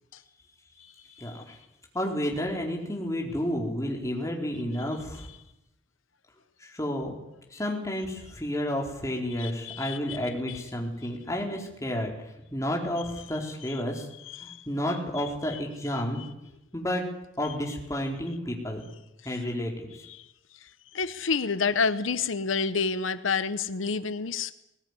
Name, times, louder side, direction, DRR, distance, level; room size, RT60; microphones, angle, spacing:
voice 1, 1.2-1.6 1.9-5.3 6.6-7.2 7.5-14.1 14.4-16.2 16.7-17.0 17.4-18.8 19.2-20.0, equal, 15° left, 0 dB, 4.3 m, -31 dB
voice 2, 9.4-10.2 14.3-14.7 20.2-20.3 20.6-24.5, left 5 dB, 85° left, 13 dB, 0.9 m, -29 dB
20.5 x 19.0 x 9.9 m, 0.87 s
head